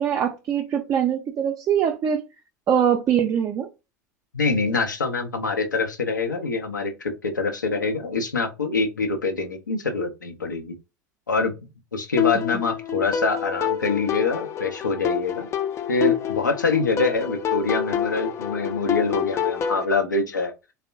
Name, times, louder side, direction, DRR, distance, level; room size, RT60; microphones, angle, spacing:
voice 1, 0.0-2.2 2.7-3.7, right 8 dB, 30° right, 0.4 m, -22 dB
voice 2, 4.3-10.7 11.3-11.5 11.9-15.5 15.9-20.5, left 3 dB, 80° left, 0.6 m, -25 dB
sound 1, 12.2-19.8, left 8 dB, 30° left, 0.4 m, -27 dB
3.4 x 2.0 x 2.5 m
figure-of-eight pair, 75°, 10 cm